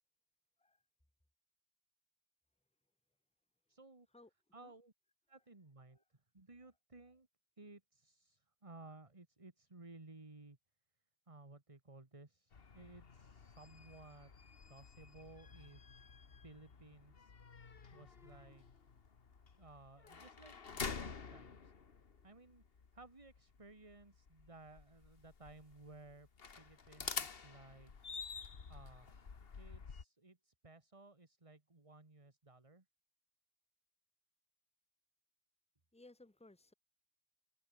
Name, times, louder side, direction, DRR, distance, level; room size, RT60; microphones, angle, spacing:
voice 1, 3.7-4.1 4.5-4.9 5.3-7.3 7.6-10.6 11.3-14.3 14.7-15.8 16.4-17.3 17.9-18.7 19.6-21.7 22.2-22.6 22.9-26.3 26.6-27.9 28.3-29.2 29.6-32.9, right 2 dB, 30° right, 2.0 m, -58 dB
sound 1, 12.5-30.0, left 5 dB, 65° left, 1.6 m, -49 dB
voice 2, 35.9-36.7, left 2 dB, 5° left, 1.5 m, -60 dB
omnidirectional pair, 1.0 m